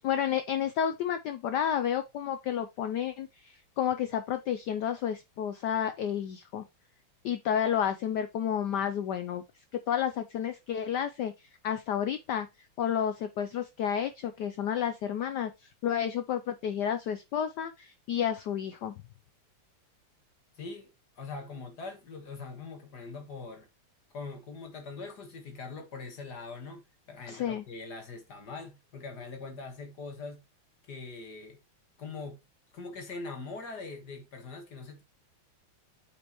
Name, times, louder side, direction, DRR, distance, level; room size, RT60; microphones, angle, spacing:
voice 1, 0.0-6.6 7.2-9.4 9.9-12.5 12.8-15.5 15.8-18.9 27.3-27.6, left 9 dB, 75° left, 1.0 m, -31 dB
voice 2, 20.6-20.9 21.2-23.7 24.1-30.4 30.9-31.6 32.0-32.4 32.7-35.0, left 4 dB, 50° left, 1.9 m, -42 dB
8.6 x 5.2 x 3.0 m
omnidirectional pair, 2.4 m